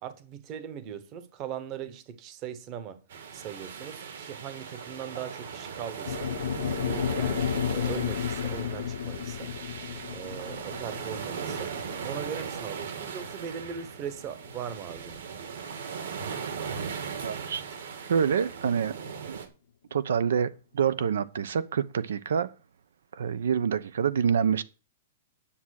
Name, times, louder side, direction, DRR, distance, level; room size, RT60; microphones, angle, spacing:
voice 1, 0.0-3.0 3.3-6.4 6.8-9.5 10.1-11.8 12.0-15.3, right 8 dB, 20° right, 1.1 m, -39 dB
sound 1, 3.1-19.5, right 6 dB, 60° right, 2.6 m, -38 dB
sound 2, 6.1-14.3, left 9 dB, 65° left, 0.6 m, -33 dB
voice 2, 17.2-17.6 18.1-19.0 19.3-19.4 19.9-22.5 23.1-24.6, right 7 dB, 80° right, 0.9 m, -26 dB
10.0 x 7.3 x 6.5 m
hypercardioid pair, 180°, 0 cm